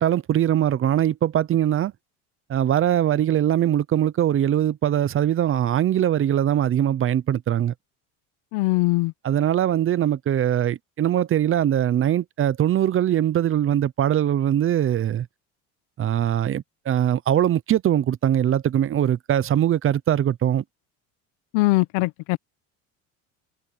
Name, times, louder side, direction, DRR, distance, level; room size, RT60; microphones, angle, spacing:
voice 1, 0.0-1.9 2.5-7.7 9.2-15.3 16.0-20.6, right 11 dB, 35° right, 0.8 m, -21 dB
voice 2, 8.5-9.1 21.5-22.4, left 22 dB, 75° left, 1.2 m, -21 dB
supercardioid pair, 115°, 36 cm